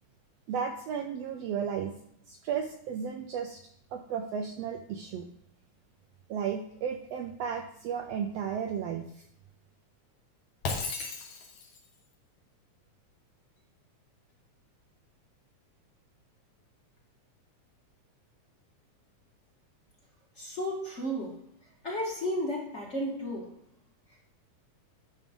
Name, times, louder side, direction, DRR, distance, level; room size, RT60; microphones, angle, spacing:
voice 1, 0.5-2.0 2.3-3.6 3.9-5.3 6.3-9.0, right 7 dB, 80° right, 3 dB, 1.5 m, -34 dB
Shatter, 10.6-11.9, left 3 dB, 65° left, 2.5 m, -35 dB
voice 2, 20.4-21.3 21.8-23.5, equal, 30° left, -2 dB, 1.5 m, -33 dB
11.0 x 6.4 x 3.7 m, 0.69 s
omnidirectional pair, 3.5 m